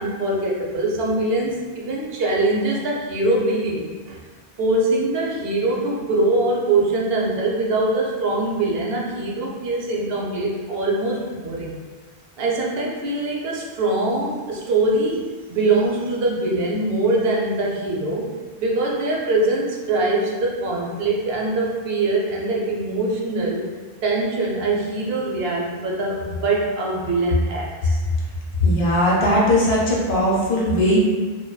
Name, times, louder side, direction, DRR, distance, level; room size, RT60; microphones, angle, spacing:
voice 1, 0.0-4.2 4.6-11.7 12.4-18.3 18.6-23.7 24.0-28.0, right 2 dB, 75° right, -3 dB, 0.8 m, -23 dB
voice 2, 28.6-31.0, left 1 dB, 90° left, -4 dB, 1.0 m, -18 dB
2.6 x 2.2 x 2.2 m, 1.4 s
omnidirectional pair, 1.0 m